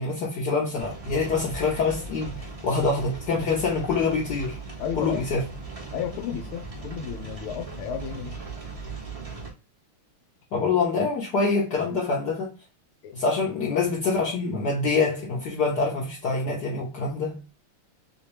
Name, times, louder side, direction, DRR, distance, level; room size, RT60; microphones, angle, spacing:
voice 1, 0.0-4.6 5.0-5.4 10.5-12.5 13.1-17.4, left 4 dB, 60° left, 1.3 m, -25 dB
sound 1, 0.8-9.5, right 3 dB, 30° right, 0.6 m, -38 dB
voice 2, 4.8-5.2 5.9-8.3 13.0-13.1 13.7-13.9, left 8 dB, 85° left, 1.5 m, -33 dB
3.5 x 2.9 x 3.0 m
omnidirectional pair, 2.3 m